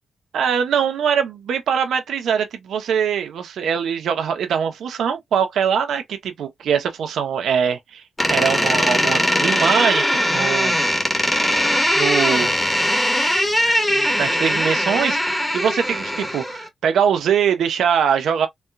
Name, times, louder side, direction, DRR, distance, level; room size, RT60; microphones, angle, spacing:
voice 1, 0.3-8.0 8.3-10.8 12.0-12.5 13.6-18.5, right 7 dB, 90° right, 0.7 m, -22 dB
Door, 8.2-16.7, equal, 10° left, 1.2 m, -20 dB
4.2 x 2.3 x 2.3 m
cardioid pair, 85°, 0 cm